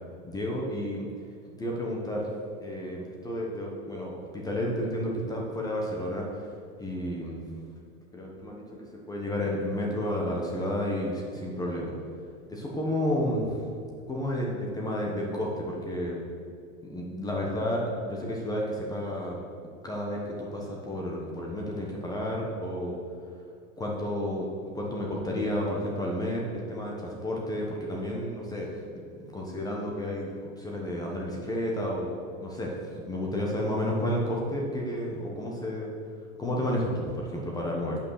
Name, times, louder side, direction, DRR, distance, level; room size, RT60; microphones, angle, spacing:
voice 1, 0.2-1.1 1.6-2.3 2.6-6.3 6.8-7.5 8.1-8.6 9.1-12.0 12.5-13.6 14.1-16.2 16.9-19.4 19.8-23.0 23.8-24.5 24.7-28.7 29.3-30.3 30.6-32.8 33.1-35.9 36.4-38.0, left 1 dB, 10° left, -2 dB, 1.0 m, -31 dB
8.4 x 5.7 x 6.4 m, 2.3 s
supercardioid pair, 155°, 39 cm